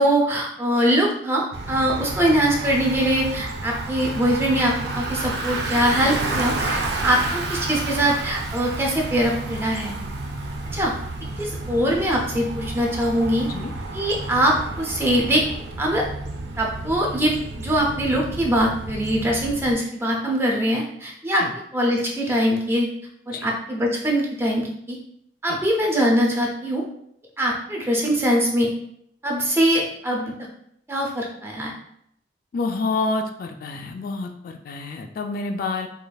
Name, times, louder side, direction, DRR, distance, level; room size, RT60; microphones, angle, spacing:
voice 1, 0.0-9.9 10.7-10.9 11.4-13.5 13.9-15.4 15.8-16.0 16.6-21.4 21.7-22.9 23.3-25.0 25.4-26.8 27.4-28.7 29.2-30.3 30.9-31.7, equal, 15° right, -1 dB, 0.6 m, -22 dB
Bicycle, 1.5-19.7, right 2 dB, 65° right, 0.5 m, -31 dB
voice 2, 32.5-35.9, left 3 dB, 50° left, 4 dB, 0.3 m, -28 dB
5.0 x 2.5 x 2.3 m, 0.72 s
head